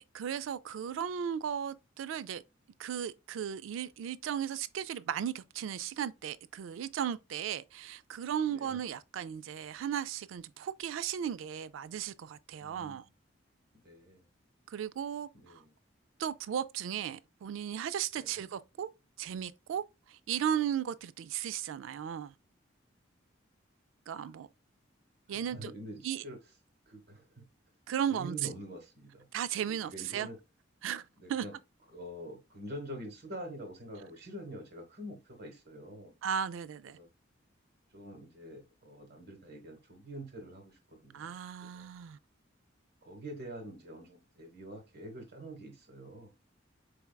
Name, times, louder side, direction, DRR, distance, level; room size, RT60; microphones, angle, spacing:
voice 1, 0.0-2.4 2.8-13.0 14.7-15.6 16.2-18.9 19.2-22.3 24.1-24.5 25.3-25.7 26.0-26.2 27.9-28.5 29.3-30.3 30.8-31.5 36.2-37.0 41.1-42.2, right 9 dB, 85° right, 0.3 m, -36 dB
voice 2, 8.5-8.8 12.6-13.1 13.8-14.3 15.3-15.7 18.2-18.3 24.2-24.3 25.3-26.4 26.9-27.4 28.1-29.3 29.7-30.4 31.2-31.5 31.9-36.1 36.9-37.1 37.9-41.9 43.0-46.3, right 1 dB, 55° right, 1.1 m, -46 dB
4.5 x 3.4 x 2.2 m
head